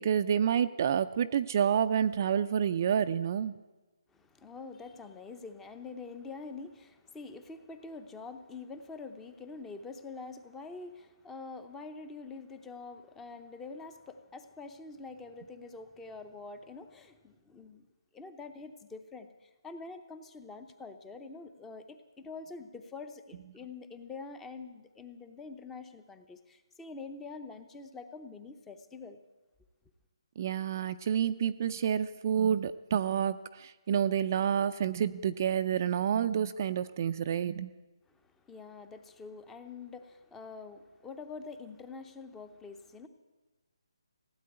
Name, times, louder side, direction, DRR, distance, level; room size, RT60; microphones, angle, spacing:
voice 1, 0.0-3.5 30.4-37.7, right 8 dB, 35° right, 11 dB, 0.4 m, -29 dB
voice 2, 4.1-17.9 18.1-29.2 38.1-43.1, left 4 dB, 5° left, 9 dB, 0.7 m, -46 dB
16.0 x 8.5 x 9.7 m, 1.2 s
hypercardioid pair, 165°, 3 cm